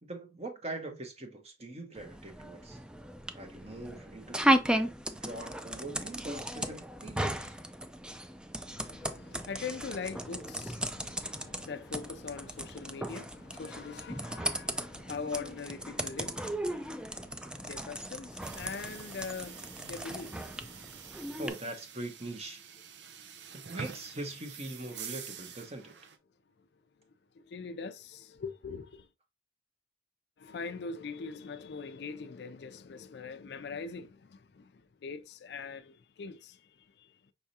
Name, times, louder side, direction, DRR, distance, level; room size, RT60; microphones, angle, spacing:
voice 1, 0.0-2.8 3.3-4.5 5.1-7.6 21.4-22.6 23.7-25.9, right 2 dB, 35° right, 1.1 m, -42 dB
sound 1, 2.0-21.5, right 1 dB, 5° right, 0.4 m, -36 dB
voice 2, 8.6-21.0 27.4-29.1 30.4-37.2, left 5 dB, 65° left, 0.4 m, -42 dB
sound 2, 18.4-26.2, right 6 dB, 80° right, 0.7 m, -46 dB
5.4 x 3.5 x 2.7 m
head